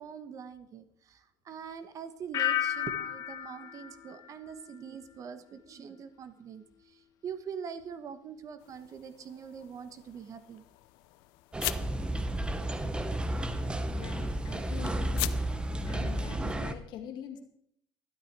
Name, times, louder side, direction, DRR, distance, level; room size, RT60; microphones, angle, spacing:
voice 1, 0.0-10.6 13.4-13.7, right 7 dB, 40° right, 11 dB, 1.2 m, -44 dB
sound 1, 2.3-5.2 5.5-6.0, left 10 dB, 45° left, 1.3 m, -34 dB
sound 2, 8.6-16.4, left 20 dB, 90° left, 0.6 m, -43 dB
sound 3, 11.5-16.7, right 1 dB, 10° right, 0.9 m, -32 dB
voice 2, 13.9-15.5 15.8-17.4, left 9 dB, 60° left, 4 dB, 2.1 m, -44 dB
12.5 x 12.0 x 4.7 m, 0.70 s
cardioid pair, 130°, 8 cm